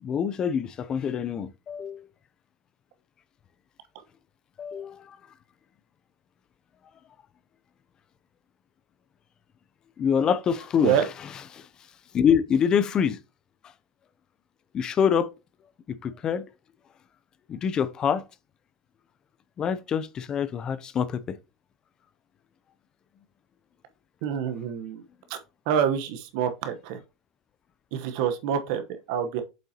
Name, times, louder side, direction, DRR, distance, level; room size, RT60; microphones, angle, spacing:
voice 1, 0.0-2.1 4.6-5.2 10.0-11.1 11.5-11.7 12.1-13.2 14.7-15.3 15.9-16.4 17.5-18.2 19.6-21.4, left 7 dB, 25° left, 0.5 m, -25 dB
voice 2, 24.2-25.0 25.3-25.4 25.7-27.0 27.9-28.8 29.1-29.4, right 8 dB, 60° right, 1.0 m, -26 dB
7.4 x 5.5 x 2.9 m
supercardioid pair, 140°, 3 cm